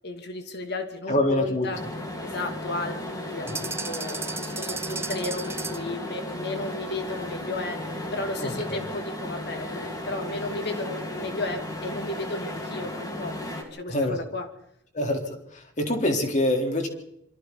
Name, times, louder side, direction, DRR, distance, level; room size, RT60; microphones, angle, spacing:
voice 1, 0.0-1.8 2.2-13.4 13.7-14.5, left 2 dB, 60° left, 6 dB, 2.7 m, -34 dB
voice 2, 1.1-1.7 3.4-3.6 8.4-8.8 13.9-14.2 14.9-16.9, left 1 dB, 40° left, 3 dB, 3.8 m, -26 dB
sound 1, 1.7-13.6, left 1 dB, 20° left, 4.1 m, -35 dB
sound 2, 3.5-6.0, right 4 dB, 15° right, 0.8 m, -34 dB
27.0 x 24.5 x 4.1 m, 0.80 s
head